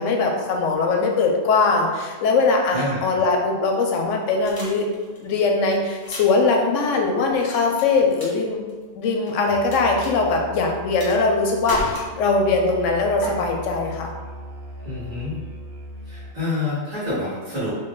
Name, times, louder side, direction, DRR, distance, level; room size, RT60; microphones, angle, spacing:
voice 1, 0.0-4.9 5.2-8.6 8.9-14.1, left 3 dB, 90° left, 1 dB, 0.9 m, -21 dB
voice 2, 2.7-3.2 14.8-15.3 16.1-17.7, left 2 dB, 40° right, -10 dB, 1.7 m, -27 dB
sound 1, 4.4-5.3 5.9-6.4 7.8-8.4 8.7-9.7 10.0-10.1 11.0-11.4 11.7-12.5 13.2-13.3, equal, 20° left, 0.7 m, -34 dB
Musical instrument, 9.5-16.5, right 1 dB, 65° right, 0.7 m, -38 dB
3.1 x 2.6 x 3.7 m, 1.4 s
omnidirectional pair, 1.3 m